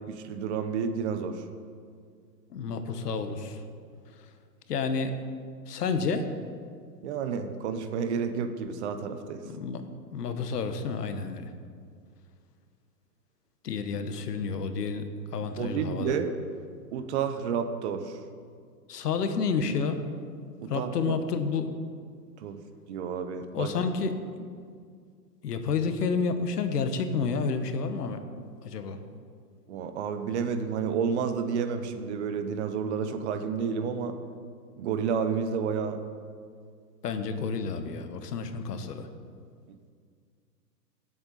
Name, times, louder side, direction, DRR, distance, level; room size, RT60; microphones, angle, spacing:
voice 1, 0.1-1.4 7.0-9.4 15.4-16.4 16.9-18.2 20.6-21.2 22.4-22.6 22.9-23.7 29.7-34.2 34.8-36.0, right 6 dB, 40° right, 8 dB, 1.0 m, -30 dB
voice 2, 2.5-3.6 4.7-5.1 5.7-6.3 9.4-9.8 10.1-11.5 13.6-15.1 15.3-16.2 18.9-20.0 20.7-21.7 23.5-24.5 25.4-28.2 28.6-29.0 37.0-39.1, left 5 dB, 65° left, 8 dB, 1.3 m, -30 dB
17.5 x 7.9 x 4.1 m, 2.1 s
hypercardioid pair, 130°, 50 cm